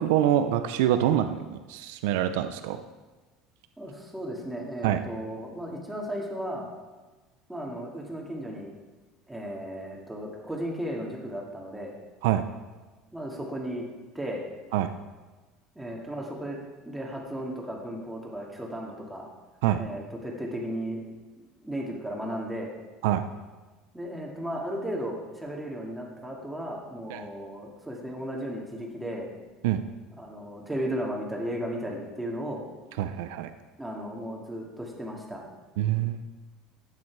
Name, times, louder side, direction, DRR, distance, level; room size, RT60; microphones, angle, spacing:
voice 1, 0.0-2.8 4.8-5.0 12.2-12.4 14.7-14.9 19.6-19.8 23.0-23.3 27.1-27.2 29.6-29.8 33.0-33.5 35.8-36.2, right 11 dB, 90° right, 9 dB, 0.7 m, -25 dB
voice 2, 3.8-6.7 7.5-8.7 9.3-11.9 13.1-13.9 14.1-14.4 15.8-16.6 16.8-19.3 19.8-21.0 21.4-22.7 23.9-29.3 30.2-32.6 33.8-35.4, equal, 5° right, -2 dB, 2.3 m, -35 dB
14.5 x 9.4 x 4.8 m, 1.2 s
cardioid pair, 150°, 0 cm